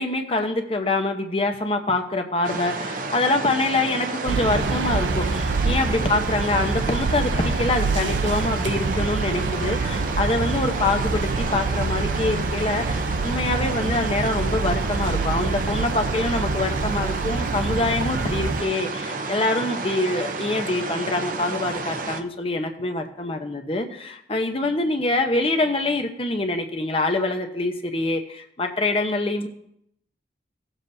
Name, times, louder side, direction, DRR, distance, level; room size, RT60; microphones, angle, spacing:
voice 1, 0.0-29.5, left 2 dB, 30° left, 5 dB, 0.8 m, -25 dB
sound 1, 2.4-22.2, right 3 dB, 45° right, 0.7 m, -31 dB
sound 2, 4.3-18.6, right 3 dB, 80° right, 0.6 m, -26 dB
17.0 x 7.3 x 2.7 m, 0.74 s
head